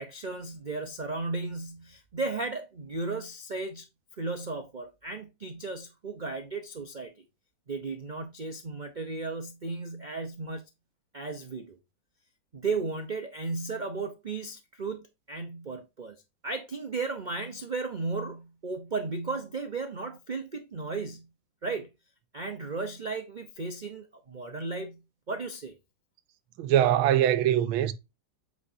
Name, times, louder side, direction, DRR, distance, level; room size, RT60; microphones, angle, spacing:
voice 1, 0.0-3.9 4.2-7.1 7.7-10.7 11.1-11.8 12.5-16.2 16.4-21.3 21.6-21.9 22.3-25.7, right 3 dB, 55° right, 0.5 m, -35 dB
voice 2, 26.6-27.9, right 11 dB, 85° right, 1.6 m, -22 dB
8.5 x 4.8 x 2.7 m
omnidirectional pair, 2.2 m